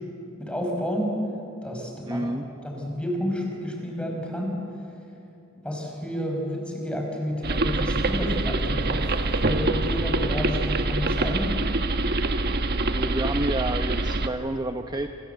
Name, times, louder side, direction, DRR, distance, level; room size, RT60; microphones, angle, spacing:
voice 1, 0.4-1.2 1.6-2.3 2.6-4.6 5.6-11.5, equal, 5° left, 1 dB, 5.5 m, -30 dB
voice 2, 2.1-2.5 12.9-15.1, right 1 dB, 20° right, 6 dB, 0.8 m, -29 dB
sound 1, 7.4-14.3, right 2 dB, 50° right, 1.4 m, -25 dB
28.0 x 26.5 x 8.0 m, 2.8 s
head